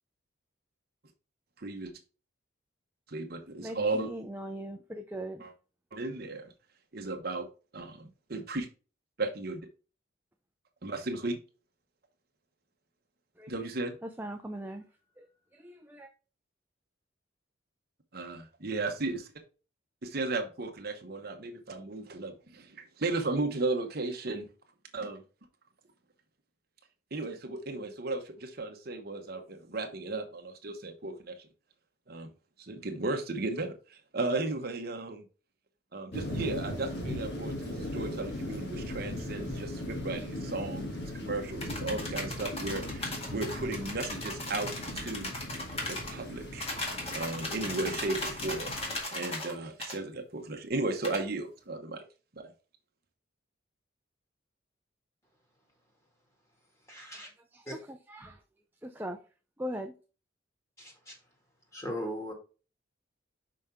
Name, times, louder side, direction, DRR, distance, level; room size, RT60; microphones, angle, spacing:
voice 1, 1.6-1.9 3.1-4.1 5.4-5.5 5.9-6.5 6.9-7.5 7.7-8.7 9.2-9.6 10.8-11.4 13.5-14.0 18.1-19.3 20.0-24.4 24.9-25.2 27.1-31.5 32.1-32.3 32.6-35.2 35.9-44.7 44.9-45.3 45.8-46.8 47.1-48.7 49.0-52.0 52.3-52.5, right 2 dB, 50° right, 5 dB, 1.0 m, -35 dB
voice 2, 3.6-5.4 13.4-13.5 14.0-14.8 15.2-15.3 15.5-16.1 57.5-58.4 58.8-59.2 59.6-59.9, right 1 dB, 10° right, 5 dB, 0.5 m, -40 dB
sound 1, 36.1-49.0, left 1 dB, 55° left, 2.1 m, -38 dB
sound 2, 41.6-46.1 46.6-49.5 49.8-50.0 51.0-51.2, left 1 dB, 30° left, 1.9 m, -37 dB
voice 3, 56.9-57.3 57.7-57.8 60.8-61.2 61.7-62.3, equal, 15° left, 0 dB, 2.2 m, -38 dB
5.6 x 5.3 x 3.6 m, 0.34 s
head